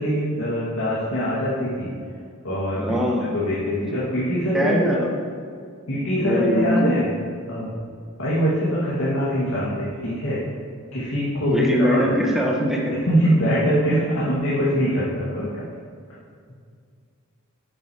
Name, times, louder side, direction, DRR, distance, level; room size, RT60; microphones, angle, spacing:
voice 1, 0.0-1.9 2.4-2.8 3.3-4.7 5.9-7.1 7.5-7.7 8.2-10.4 10.9-12.1 13.1-15.6, equal, 90° left, -9 dB, 2.0 m, -23 dB
voice 2, 2.8-3.3 4.5-5.1 6.2-7.0 11.5-13.0, equal, ahead, -2 dB, 1.0 m, -22 dB
9.5 x 7.7 x 3.0 m, 2.2 s
head